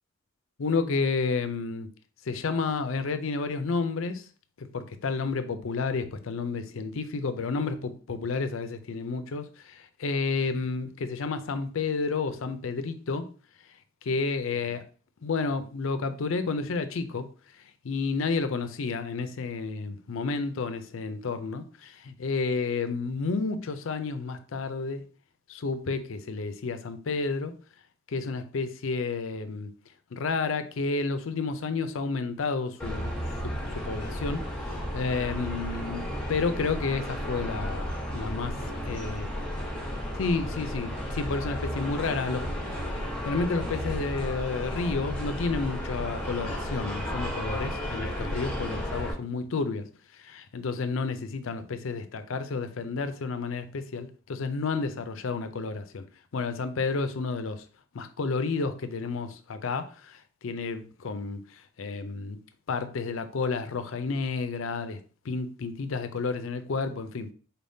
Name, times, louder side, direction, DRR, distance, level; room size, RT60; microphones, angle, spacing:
voice 1, 0.6-1.9 2.3-4.2 4.6-13.3 14.0-14.8 15.2-17.3 17.8-25.0 25.5-27.6 28.1-29.7 30.1-33.1 33.4-36.0 36.3-38.5 38.8-39.3 40.2-42.5 42.8-43.0 43.2-49.9 50.2-56.0 56.3-57.6 57.9-60.2 60.4-61.4 61.8-62.4 62.7-65.0 65.2-67.3, left 4 dB, 70° left, 0.5 m, -31 dB
sound 1, 32.8-49.1, equal, 5° left, 1.0 m, -33 dB
4.2 x 3.5 x 2.7 m
head